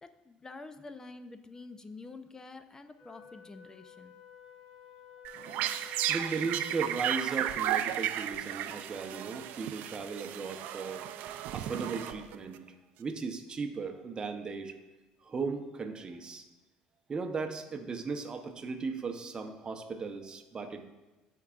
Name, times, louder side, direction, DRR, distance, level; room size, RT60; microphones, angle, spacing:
voice 1, 0.0-4.1, left 3 dB, 20° left, 9 dB, 0.4 m, -48 dB
Wind instrument woodwind instrument, 3.0-7.6, left 5 dB, 60° left, 2.4 m, -52 dB
sound 1, 5.2-12.6, right 11 dB, 65° right, 0.4 m, -34 dB
voice 2, 6.1-11.1 11.5-12.6 13.0-14.7 15.2-16.5 17.1-20.8, right 4 dB, 25° right, 5 dB, 0.8 m, -37 dB
12.0 x 4.6 x 2.4 m, 1.1 s
supercardioid pair, 105°, 3 cm